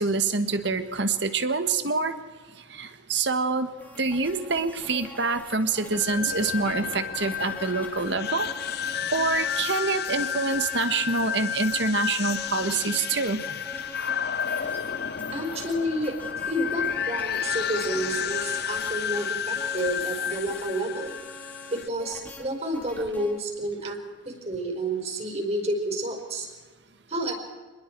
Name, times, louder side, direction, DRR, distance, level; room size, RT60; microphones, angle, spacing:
voice 1, 0.0-2.2 2.7-3.7 4.0-8.5 9.1-13.6, right 4 dB, 65° right, 10 dB, 1.6 m, -26 dB
sound 1, 3.8-23.4, equal, 10° left, 2.5 m, -44 dB
sound 2, 5.9-21.9, left 8 dB, 55° left, 0.6 m, -31 dB
voice 2, 15.3-16.2 16.5-21.1 21.7-24.0 24.2-26.5 27.1-27.3, right 1 dB, 35° right, 3 dB, 5.0 m, -30 dB
27.5 x 21.0 x 4.7 m, 1.4 s
head